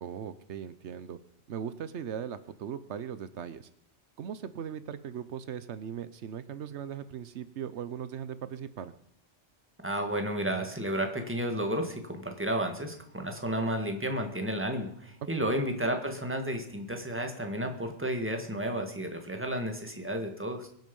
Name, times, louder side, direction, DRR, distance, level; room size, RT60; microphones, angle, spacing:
voice 1, 0.0-1.2 1.5-3.7 4.2-8.9 15.4-15.6, right 8 dB, 85° right, 14 dB, 1.1 m, -39 dB
voice 2, 9.8-20.7, right 1 dB, 10° right, 4 dB, 1.8 m, -32 dB
23.0 x 7.9 x 5.4 m, 0.70 s
omnidirectional pair, 1.1 m